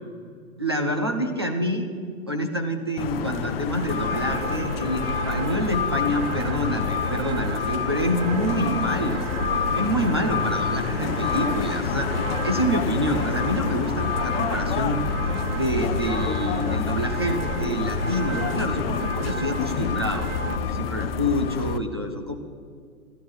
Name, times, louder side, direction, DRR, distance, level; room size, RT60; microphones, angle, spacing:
voice 1, 0.6-1.9 2.3-9.3 9.7-15.0 15.5-22.3, equal, 20° right, 5 dB, 0.3 m, -27 dB
sound 1, 3.0-21.8, left 8 dB, 40° left, 0.6 m, -28 dB
sound 2, 3.7-20.6, right 3 dB, 55° right, 1.4 m, -32 dB
13.0 x 11.5 x 6.0 m, 2.2 s
hypercardioid pair, 135°, 46 cm